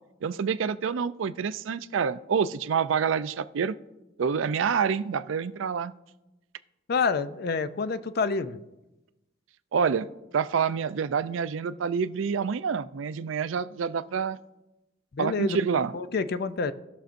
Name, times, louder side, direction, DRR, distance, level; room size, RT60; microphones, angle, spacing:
voice 1, 0.2-3.7 4.2-5.9 9.7-10.1 10.3-14.4 15.2-16.0, right 6 dB, 75° right, 14 dB, 0.4 m, -27 dB
voice 2, 6.9-8.6 15.1-15.6 15.9-16.7, left 4 dB, 55° left, 13 dB, 0.5 m, -27 dB
18.5 x 6.4 x 2.6 m, 0.99 s
head